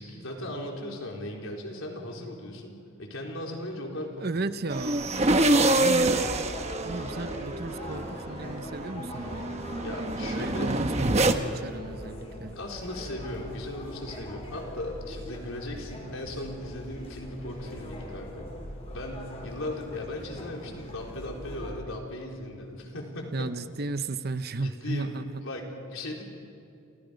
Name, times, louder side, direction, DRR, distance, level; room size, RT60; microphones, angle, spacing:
voice 1, 0.0-2.7 3.0-4.5 9.8-10.8 12.5-18.6 18.9-23.5 24.6-25.1 25.4-26.2, left 1 dB, 75° left, 0 dB, 4.2 m, -37 dB
voice 2, 4.2-5.2 5.8-6.3 6.8-9.5 10.2-12.5 23.3-25.4, right 3 dB, 45° right, 12 dB, 0.8 m, -34 dB
sound 1, 4.7-11.3, right 2 dB, 30° right, 1.1 m, -26 dB
sound 2, 6.1-21.7, equal, 30° left, 4.8 m, -41 dB
29.5 x 28.0 x 5.3 m, 2.5 s
head